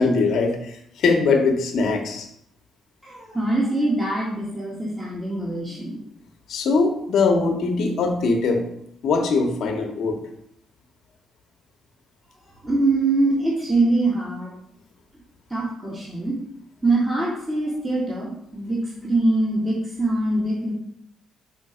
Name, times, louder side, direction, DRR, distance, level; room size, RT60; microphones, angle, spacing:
voice 1, 0.0-2.3 6.5-8.6 9.0-10.2, left 4 dB, 70° left, 3 dB, 1.1 m, -21 dB
voice 2, 3.0-6.0 12.6-14.5 15.5-16.4 16.8-20.7, right 2 dB, 10° right, -5 dB, 1.6 m, -23 dB
5.1 x 3.7 x 5.0 m, 0.73 s
cardioid pair, 90°, 0 cm